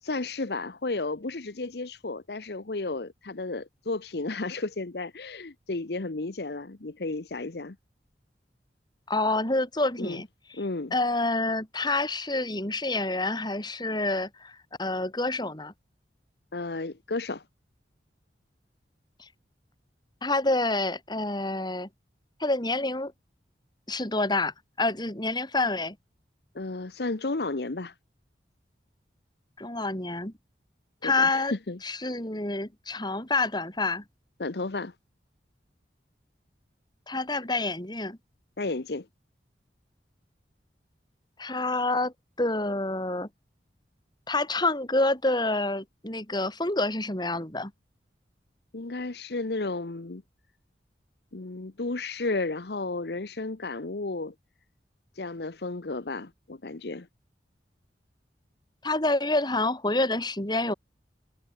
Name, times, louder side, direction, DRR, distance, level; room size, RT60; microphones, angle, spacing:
voice 1, 0.0-7.8 10.0-10.2 10.6-10.9 16.5-17.4 26.5-27.9 31.0-31.8 34.4-34.9 38.6-39.1 48.7-50.2 51.3-54.3 55.1-57.1, left 3 dB, 65° left, 1.0 m, -33 dB
voice 2, 9.1-10.3 10.9-15.7 19.2-19.3 20.2-21.9 22.4-23.1 23.9-26.0 29.6-30.3 31.0-31.5 31.8-34.0 37.1-38.2 41.4-43.3 44.3-47.7 58.8-60.7, left 2 dB, 25° left, 4.1 m, -28 dB
head